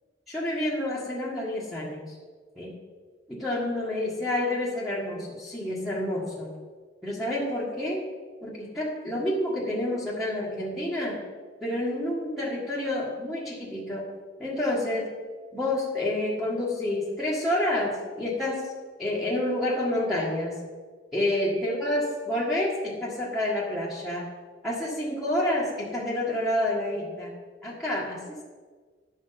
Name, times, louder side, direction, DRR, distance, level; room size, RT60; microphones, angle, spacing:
voice 1, 0.3-2.1 2.6-2.8 3.3-6.5 7.0-8.0 8.4-11.2 11.6-14.1 14.4-15.1 15.5-18.7 19.0-20.6 21.1-24.3 24.6-27.3 27.6-28.4, left 1 dB, ahead, -8 dB, 1.7 m, -29 dB
11.0 x 6.3 x 5.9 m, 1.5 s
head